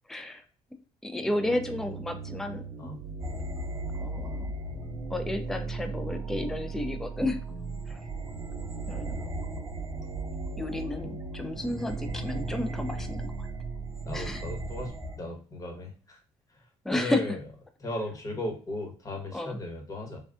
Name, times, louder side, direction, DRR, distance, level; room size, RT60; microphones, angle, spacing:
voice 1, 0.1-0.4 1.0-2.6 4.0-4.5 5.1-7.4 7.9-8.0 8.9-9.3 10.6-13.5 14.1-14.4 16.8-17.2 19.3-19.6, left 1 dB, 5° left, 7 dB, 0.3 m, -32 dB
sound 1, 1.2-14.9, right 3 dB, 65° right, 0.4 m, -38 dB
sound 2, 3.2-15.2, right 1 dB, 25° right, 1.0 m, -41 dB
voice 2, 14.0-16.2 16.5-17.4 17.8-20.2, left 1 dB, 30° left, 2 dB, 1.0 m, -37 dB
3.4 x 2.2 x 2.4 m, 0.40 s
cardioid pair, 110°, 11 cm